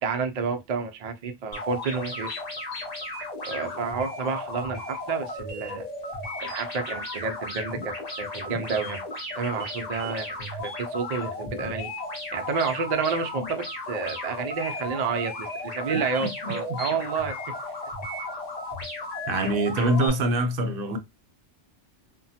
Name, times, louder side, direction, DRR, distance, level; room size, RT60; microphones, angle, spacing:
voice 1, 0.0-2.3 3.5-5.9 6.4-9.0 9.3-11.9 12.3-17.4, right 5 dB, 75° right, 0.3 m, -30 dB
sound 1, 1.5-20.1, left 2 dB, 35° left, 1.1 m, -35 dB
voice 2, 16.4-16.8 19.3-21.0, right 1 dB, 60° right, 0.7 m, -25 dB
2.9 x 2.1 x 2.7 m
omnidirectional pair, 1.2 m